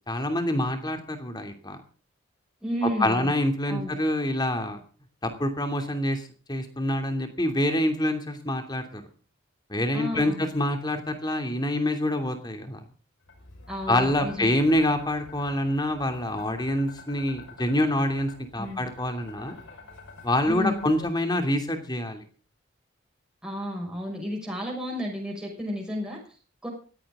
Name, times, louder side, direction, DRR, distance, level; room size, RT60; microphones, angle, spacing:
voice 1, 0.1-1.8 2.8-4.8 5.2-9.0 9.7-12.8 13.9-19.6 20.2-22.2, left 1 dB, 20° left, 6 dB, 2.8 m, -26 dB
voice 2, 2.6-3.3 3.7-3.9 9.9-10.4 13.7-14.5 18.6-18.8 20.4-20.8 23.4-26.2 26.6-26.7, equal, 5° right, -2 dB, 6.2 m, -32 dB
sound 1, 13.3-21.1, left 4 dB, 65° left, 5.4 m, -47 dB
19.0 x 15.5 x 3.8 m, 0.40 s
head